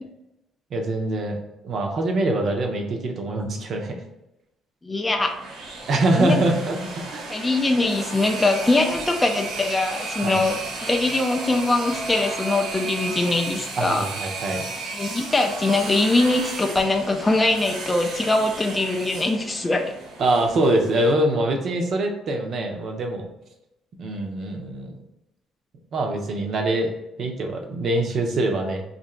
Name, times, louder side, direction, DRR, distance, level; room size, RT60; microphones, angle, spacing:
voice 1, 0.7-1.4 1.6-4.0 5.9-7.3 10.2-10.4 13.8-14.7 20.2-23.3 24.0-24.9 25.9-26.9 27.2-28.8, right 2 dB, 50° right, 2 dB, 0.7 m, -24 dB
voice 2, 4.8-5.3 6.2-6.4 7.3-14.1 14.9-19.9, left 2 dB, 15° left, 3 dB, 0.3 m, -22 dB
sound 1, 5.2-21.1, right 3 dB, 85° right, 1.2 m, -34 dB
2.9 x 2.5 x 4.3 m, 0.89 s
cardioid pair, 145°, 0 cm